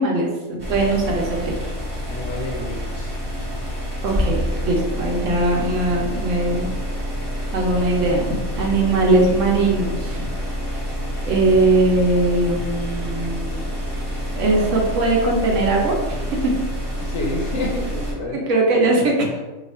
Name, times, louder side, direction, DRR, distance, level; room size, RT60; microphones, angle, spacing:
voice 1, 0.0-1.5 4.0-6.7 7.5-10.3 11.2-13.6 14.3-16.5 18.3-19.3, right 2 dB, 65° right, -1 dB, 1.0 m, -20 dB
sound 1, 0.6-18.1, equal, 25° right, 0.4 m, -27 dB
voice 2, 2.1-3.1 17.0-18.4 19.3-19.4, left 1 dB, 65° left, -1 dB, 0.8 m, -28 dB
2.7 x 2.4 x 4.1 m, 1.2 s
omnidirectional pair, 1.5 m